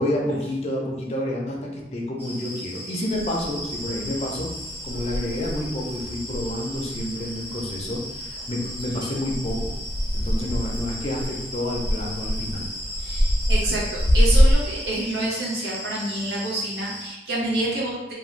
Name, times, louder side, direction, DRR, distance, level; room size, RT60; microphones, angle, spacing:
voice 1, 0.0-4.5 4.8-9.7 10.1-12.7, left 1 dB, 35° left, -1 dB, 0.5 m, -29 dB
sound 1, 2.2-17.1, equal, 10° right, 1.1 m, -36 dB
sound 2, 3.1-14.5, equal, 85° left, 0.6 m, -26 dB
voice 2, 13.0-18.1, right 1 dB, 70° right, -4 dB, 0.8 m, -28 dB
2.5 x 2.2 x 3.1 m, 0.96 s
head